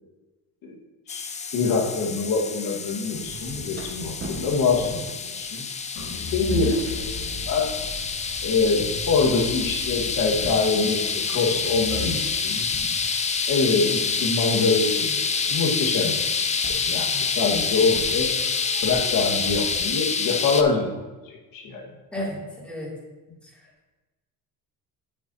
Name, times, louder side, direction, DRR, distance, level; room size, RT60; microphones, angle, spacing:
voice 1, 1.1-5.7 6.3-6.7 7.5-7.7 8.4-11.0 11.3-12.7 13.5-16.2 16.7-18.3 18.8-20.9 21.2-21.8, left 4 dB, 60° left, 0 dB, 1.7 m, -24 dB
sound 1, 1.1-20.6, left 5 dB, 20° left, 0.4 m, -27 dB
sound 2, 3.1-8.3 8.7-9.4 9.8-12.4 12.7-13.5 14.1-20.0, right 3 dB, 30° right, 1.3 m, -42 dB
sound 3, 6.0-16.2 16.6-17.4, left 4 dB, 75° left, 2.5 m, -38 dB
voice 2, 22.1-22.9 23.4-23.7, equal, 5° left, -5 dB, 2.6 m, -33 dB
8.1 x 7.3 x 2.8 m, 1.2 s
cardioid pair, 110°, 39 cm